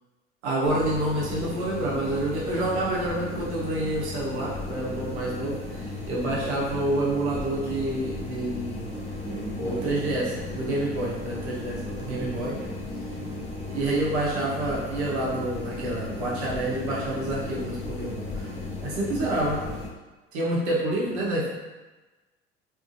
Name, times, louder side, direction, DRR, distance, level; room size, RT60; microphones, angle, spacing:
voice 1, 0.4-8.9 9.6-12.5 13.7-18.5 18.8-19.6 20.3-21.5, right 1 dB, 70° right, -5 dB, 0.7 m, -28 dB
sound 1, 0.6-19.9, left 3 dB, 20° left, 0.5 m, -35 dB
voice 2, 3.0-3.3 9.2-10.2 10.5-10.6 12.0-12.8 13.1-13.3 19.3-19.7 21.0-21.3, right 2 dB, 20° right, -7 dB, 0.9 m, -38 dB
2.6 x 2.4 x 2.5 m, 1.2 s
hypercardioid pair, 70°, 34 cm